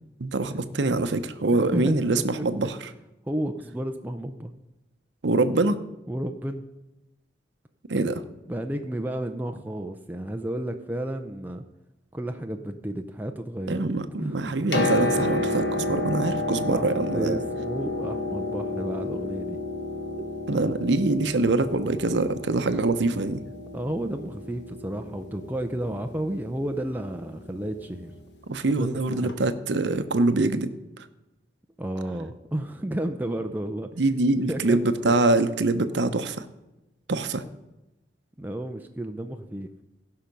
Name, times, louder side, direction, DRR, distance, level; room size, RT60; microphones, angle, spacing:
voice 1, 0.2-2.8 5.2-5.8 7.9-8.2 13.7-17.4 20.5-23.4 28.5-30.7 34.0-36.4 37.1-37.4, right 2 dB, 75° right, 11 dB, 0.7 m, -24 dB
voice 2, 1.5-2.7 3.3-4.5 6.1-6.6 8.5-11.6 12.1-13.9 14.2-14.5 16.7-16.8 17.1-19.6 23.7-28.1 28.8-29.3 31.8-33.9 34.5-34.8 35.0-35.1 38.4-39.7, right 1 dB, 10° right, 5 dB, 0.5 m, -32 dB
Piano, 14.5-28.2 29.3-29.4, left 2 dB, 70° left, 1.2 m, -31 dB
16.5 x 5.7 x 5.3 m, 0.98 s
head